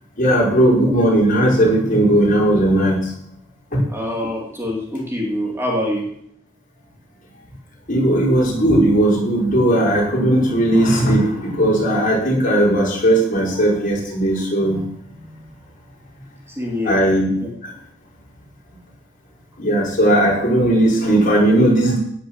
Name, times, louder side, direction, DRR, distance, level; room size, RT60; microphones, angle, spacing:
voice 1, 0.2-3.0 3.7-3.8 7.9-14.8 16.9-17.3 19.6-22.0, right 1 dB, 45° left, -3 dB, 5.2 m, -17 dB
voice 2, 3.9-6.1 16.5-17.2, left 1 dB, 15° right, -1 dB, 2.9 m, -25 dB
18.0 x 6.9 x 7.5 m, 0.69 s
head